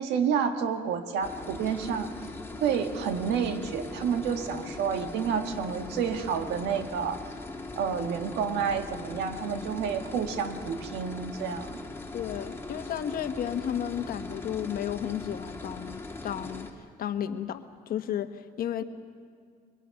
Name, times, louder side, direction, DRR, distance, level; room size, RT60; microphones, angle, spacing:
voice 1, 0.0-2.1 2.6-7.3 7.8-11.8, right 7 dB, 85° right, 7 dB, 1.6 m, -29 dB
sound 1, 1.2-16.7, left 2 dB, 15° left, 2.4 m, -40 dB
voice 2, 12.1-16.7 17.0-18.8, left 10 dB, 60° left, 9 dB, 1.3 m, -33 dB
29.5 x 23.0 x 5.9 m, 2.1 s
cardioid pair, 110°, 17 cm